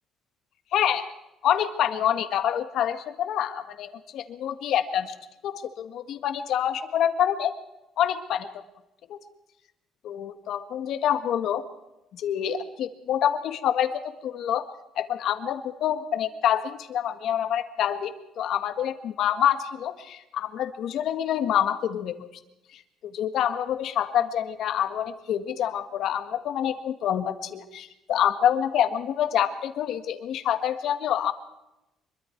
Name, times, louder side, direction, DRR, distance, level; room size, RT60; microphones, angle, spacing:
voice 1, 0.7-1.0 1.4-5.1 5.4-7.5 8.0-8.5 9.1-9.2 10.0-11.6 12.1-14.7 14.9-22.3 22.7-31.3, left 10 dB, 60° left, 9 dB, 1.7 m, -27 dB
25.0 x 22.5 x 4.6 m, 0.92 s
cardioid pair, 160°, 0 cm